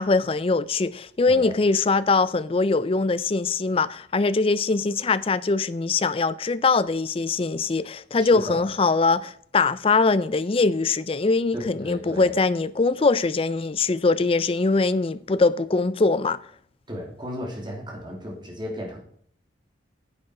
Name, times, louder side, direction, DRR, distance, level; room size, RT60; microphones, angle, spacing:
voice 1, 0.0-16.4, left 3 dB, 30° left, 0.4 m, -22 dB
voice 2, 1.2-1.6 8.2-8.7 11.5-12.3 16.9-19.0, equal, 25° right, 2.8 m, -35 dB
9.6 x 7.8 x 4.9 m
head